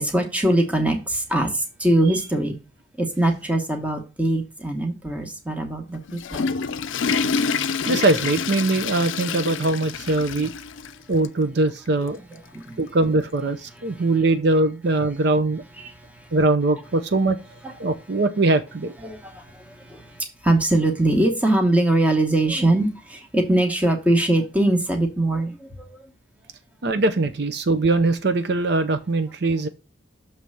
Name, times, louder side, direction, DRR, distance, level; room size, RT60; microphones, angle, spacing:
voice 1, 0.0-2.6 3.0-6.5 12.1-12.8 13.7-14.1 15.8-16.4 17.6-17.7 19.0-26.0, right 1 dB, 5° right, 1.0 m, -22 dB
Water / Toilet flush, 5.9-10.9 11.2-11.3 12.1-12.2 13.5-13.6, left 5 dB, 75° left, 0.5 m, -27 dB
voice 2, 7.8-10.5 11.1-12.2 12.8-15.6 16.3-17.4 17.8-18.9 26.8-29.7, right 2 dB, 55° right, 0.6 m, -21 dB
6.8 x 3.3 x 6.1 m
head